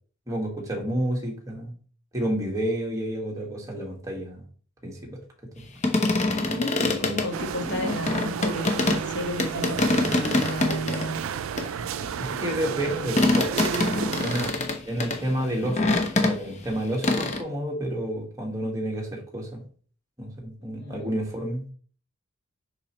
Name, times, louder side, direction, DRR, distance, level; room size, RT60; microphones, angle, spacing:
voice 1, 0.3-1.7 2.1-4.4 4.8-5.2 6.8-7.2 12.2-13.6 14.2-14.5 14.8-16.0 16.2-19.6 20.2-21.6, right 1 dB, 15° right, -1 dB, 1.8 m, -30 dB
sound 1, 5.8-9.0 9.4-11.1 11.6-16.7 17.0-17.4, left 2 dB, 35° left, 0.9 m, -25 dB
voice 2, 6.4-11.2 11.9-12.6 12.9-13.2 13.6-14.2 20.6-21.2, equal, 55° left, 2 dB, 1.8 m, -33 dB
sound 2, 7.3-14.5, right 8 dB, 85° right, 0.4 m, -32 dB
6.9 x 5.5 x 3.1 m, 0.42 s
head